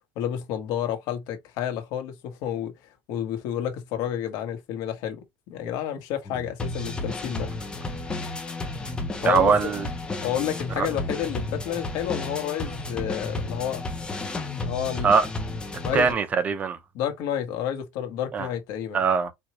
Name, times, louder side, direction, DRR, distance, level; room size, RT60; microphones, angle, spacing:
voice 1, 0.2-2.7 3.1-7.5 9.2-9.5 10.2-13.8 14.6-15.1 15.8-16.2 16.9-19.0, left 10 dB, 65° left, 1.2 m, -30 dB
sound 1, 6.2-16.1, left 2 dB, 15° left, 0.8 m, -32 dB
voice 2, 9.2-9.9 10.8-10.9 15.0-15.2 15.9-16.8 18.3-18.5 18.9-19.3, right 5 dB, 25° right, 0.7 m, -21 dB
4.5 x 2.4 x 3.0 m
cardioid pair, 145°, 6 cm